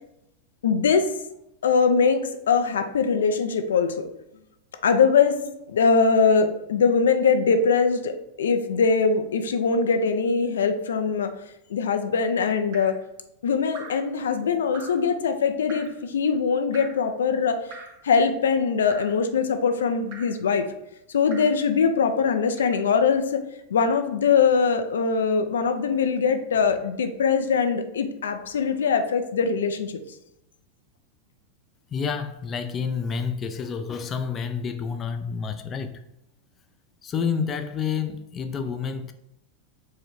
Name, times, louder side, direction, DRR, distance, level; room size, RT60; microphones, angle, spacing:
voice 1, 0.6-1.1 1.6-4.1 4.8-11.3 11.7-12.9 13.4-17.6 18.0-20.7 21.1-23.4 23.7-29.9, left 5 dB, 85° left, 7 dB, 0.4 m, -22 dB
Drip, 12.7-13.1 13.7-14.1 14.7-15.1 15.7-16.0 16.7-17.1 17.7-18.1 18.9-19.2 20.1-20.4 21.3-21.6 22.5-22.9 23.8-24.0, right 4 dB, 50° right, 0.9 m, -44 dB
voice 2, 31.9-36.0 37.0-39.1, left 6 dB, 30° left, 7 dB, 0.4 m, -29 dB
4.6 x 2.1 x 4.6 m, 0.84 s
hypercardioid pair, 110°, 0 cm